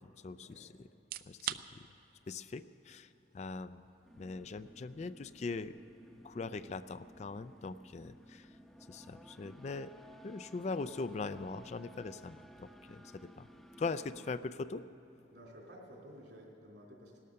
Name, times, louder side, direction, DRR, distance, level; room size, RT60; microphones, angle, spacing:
voice 1, 0.2-0.9 1.3-1.6 2.3-3.1 3.3-3.9 4.2-5.7 6.2-8.5 8.9-9.9 10.2-13.5 13.8-14.8, left 3 dB, 40° left, 13 dB, 0.3 m, -41 dB
sound 1, 0.9-15.8, right 11 dB, 50° right, 0.4 m, -52 dB
voice 2, 1.4-1.8 15.3-17.2, equal, 70° right, -1 dB, 3.2 m, -54 dB
sound 2, 4.0-14.3, equal, ahead, 0.7 m, -57 dB
17.5 x 12.5 x 6.5 m, 3.0 s
head